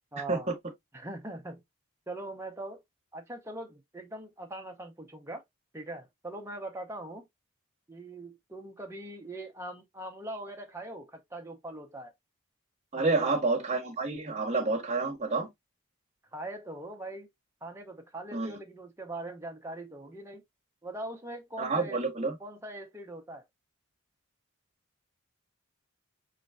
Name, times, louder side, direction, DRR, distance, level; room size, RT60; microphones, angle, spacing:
voice 1, 0.1-0.5 0.9-1.6 2.1-2.8 3.1-5.4 5.7-7.3 7.9-12.1 12.9-13.4 16.3-17.3 17.6-20.4 20.8-22.0 22.4-23.4, right 1 dB, 10° right, 0.7 m, -41 dB
voice 2, 12.9-15.5 18.3-18.6 21.6-22.4, right 3 dB, 30° right, 0.9 m, -29 dB
4.4 x 3.2 x 2.5 m
head